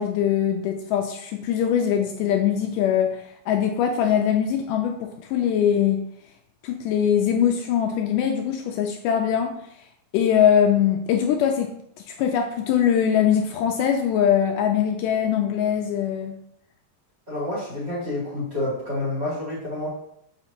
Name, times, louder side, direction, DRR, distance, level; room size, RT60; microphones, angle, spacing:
voice 1, 0.0-6.0 6.6-9.6 10.1-11.7 12.1-16.4, left 9 dB, 85° left, 4 dB, 1.9 m, -22 dB
voice 2, 17.3-19.9, left 2 dB, 25° right, -8 dB, 2.6 m, -28 dB
6.9 x 4.9 x 2.8 m, 0.73 s
omnidirectional pair, 4.1 m